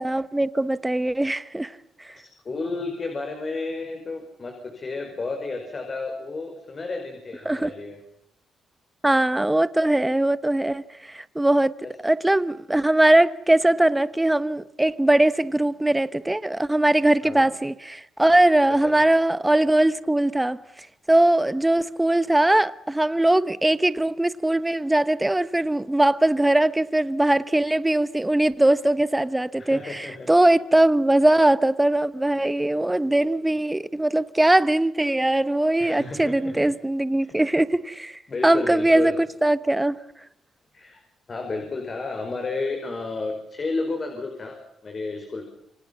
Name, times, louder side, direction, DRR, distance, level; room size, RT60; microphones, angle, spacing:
voice 1, 0.0-1.7 7.4-7.7 9.0-11.7 12.0-20.6 21.1-39.1 39.4-40.0, right 1 dB, 10° right, 1.1 m, -21 dB
voice 2, 2.2-8.0 11.8-11.9 17.2-17.5 18.7-19.0 29.6-30.3 35.8-36.8 37.2-37.4 38.3-39.2 40.7-41.0 41.3-45.4, left 3 dB, 35° left, 5.5 m, -32 dB
29.0 x 25.0 x 5.6 m
cardioid pair, 115°, 0 cm